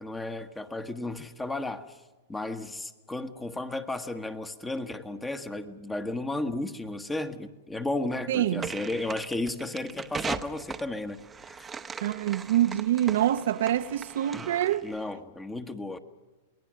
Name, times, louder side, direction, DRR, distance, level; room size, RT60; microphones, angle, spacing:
voice 1, 0.0-2.0 2.3-11.2 11.5-11.7 14.3-14.5 14.8-16.0, left 2 dB, 10° left, 1.3 m, -34 dB
voice 2, 8.3-8.7 12.0-14.9, right 12 dB, 70° right, 0.8 m, -26 dB
sound 1, 8.6-14.9, right 6 dB, 15° right, 0.9 m, -39 dB
28.0 x 20.0 x 6.4 m
hypercardioid pair, 120°, 0 cm